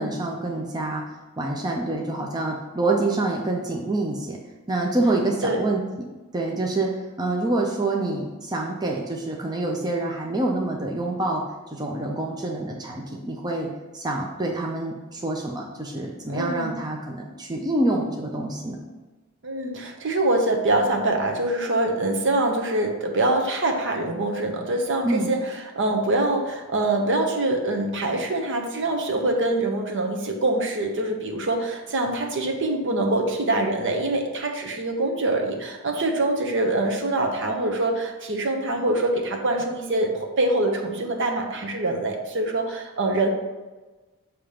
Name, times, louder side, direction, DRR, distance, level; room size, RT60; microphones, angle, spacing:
voice 1, 0.0-4.4 4.7-6.1 6.3-13.7 13.9-18.8 25.0-25.3, right 2 dB, 20° right, 0 dB, 0.5 m, -27 dB
voice 2, 16.3-16.8 19.4-25.4 25.7-43.3, right 2 dB, 55° right, 2 dB, 0.9 m, -24 dB
6.9 x 2.9 x 5.0 m, 1.2 s
head